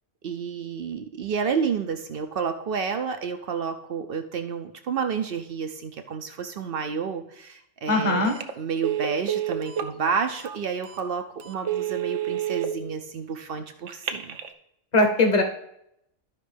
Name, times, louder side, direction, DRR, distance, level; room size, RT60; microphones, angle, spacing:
voice 1, 0.2-14.4, right 6 dB, 60° right, 6 dB, 0.7 m, -30 dB
voice 2, 7.9-8.3 14.9-15.4, left 2 dB, 35° left, 3 dB, 1.1 m, -20 dB
Telephone, 8.3-8.5 8.8-9.9 10.4-10.6 11.0-11.1 11.5-12.7 13.9-14.5, right 11 dB, 75° right, 1.0 m, -28 dB
13.0 x 5.2 x 3.3 m, 0.78 s
omnidirectional pair, 1.3 m